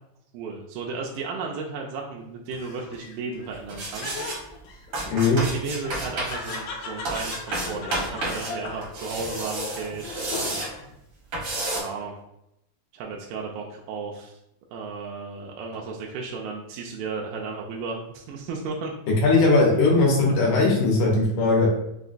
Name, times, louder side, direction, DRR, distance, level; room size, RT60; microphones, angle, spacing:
voice 1, 0.3-4.2 5.3-10.6 11.7-12.1 12.9-14.3 14.7-18.9 19.7-19.9, right 4 dB, 85° right, -1 dB, 2.2 m, -34 dB
Laughter, 2.5-10.9 11.3-12.0, left 4 dB, 85° left, 2.3 m, -38 dB
sound 1, 3.7-4.4 4.9-6.6 7.1-8.5 8.8-10.7 11.3-11.8, right 2 dB, 65° right, 1.2 m, -31 dB
voice 2, 19.2-21.7, left 3 dB, 70° left, -2 dB, 2.1 m, -19 dB
5.6 x 2.2 x 2.5 m, 0.81 s
omnidirectional pair, 4.0 m